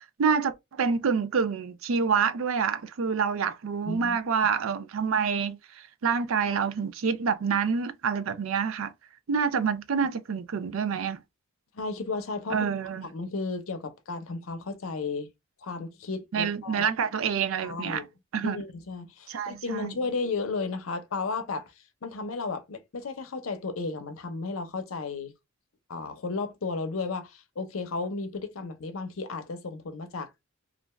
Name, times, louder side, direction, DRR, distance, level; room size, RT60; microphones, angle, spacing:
voice 1, 0.0-8.9 9.3-11.2 12.5-13.1 16.3-18.1 18.3-18.6 19.3-20.0, right 6 dB, 75° right, 0.4 m, -27 dB
voice 2, 3.9-4.2 11.7-12.7 13.0-15.3 15.6-16.9 17.6-18.0 18.4-21.7 22.0-25.3 25.9-30.4, left 4 dB, 85° left, 0.6 m, -34 dB
2.5 x 2.2 x 3.0 m
head